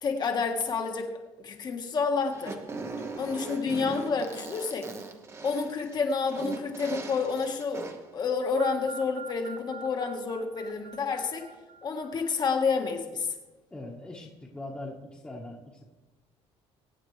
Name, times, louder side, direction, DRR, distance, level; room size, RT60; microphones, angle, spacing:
voice 1, 0.0-1.1 1.4-2.6 3.1-4.9 5.4-11.5 11.8-13.3, left 5 dB, 40° left, 4 dB, 1.6 m, -29 dB
Fart, 2.3-8.1, right 3 dB, 25° right, 1.0 m, -39 dB
sound 1, 8.6-12.5, right 6 dB, 65° right, 0.9 m, -45 dB
voice 2, 13.7-15.8, left 2 dB, 10° left, -3 dB, 1.5 m, -41 dB
23.0 x 8.6 x 3.3 m, 1.2 s
cardioid pair, 140°, 12 cm